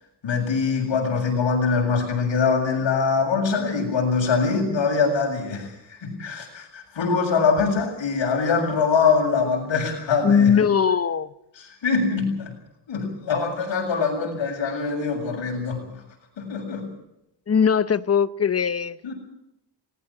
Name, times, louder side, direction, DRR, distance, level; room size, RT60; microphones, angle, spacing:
voice 1, 0.2-10.5 11.6-12.5 12.9-15.8 16.4-16.9 19.0-19.1, left 5 dB, 85° left, 7.5 m, -23 dB
voice 2, 10.2-11.3 17.5-19.0, left 7 dB, 35° left, 0.8 m, -20 dB
20.0 x 18.5 x 8.8 m
wide cardioid pair, 120°, 44 cm